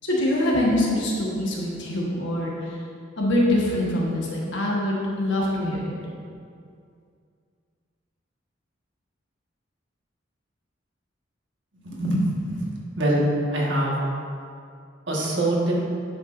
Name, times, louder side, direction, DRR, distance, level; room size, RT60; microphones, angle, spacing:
voice 1, 0.0-2.7 3.2-5.9, left 1 dB, 65° left, -4 dB, 1.2 m, -24 dB
voice 2, 11.8-12.7 13.0-13.9 15.1-15.8, right 1 dB, 65° right, -3 dB, 1.4 m, -23 dB
10.0 x 5.7 x 2.5 m, 2.3 s
head